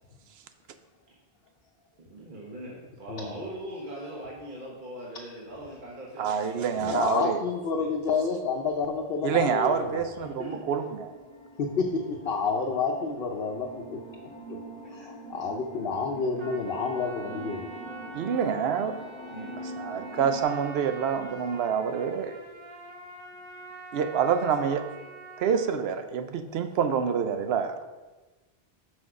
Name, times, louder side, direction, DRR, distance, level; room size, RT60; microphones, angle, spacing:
voice 1, 2.0-7.1 7.7-7.9 10.4-10.6 14.8-15.1 19.3-19.6, right 1 dB, 50° right, -4 dB, 1.2 m, -41 dB
voice 2, 6.2-7.4 9.2-11.1 18.1-19.0 19.8-22.4 23.9-24.8 25.4-27.8, right 7 dB, 75° right, 9 dB, 0.8 m, -27 dB
voice 3, 6.8-10.3 11.6-14.0 14.9-17.7, left 5 dB, 65° left, 1 dB, 0.8 m, -29 dB
sound 1, 9.1-20.4, equal, 5° left, 0.6 m, -44 dB
Trumpet, 16.4-25.9, right 3 dB, 35° right, 0.6 m, -45 dB
6.1 x 5.4 x 4.8 m, 1.2 s
omnidirectional pair, 1.1 m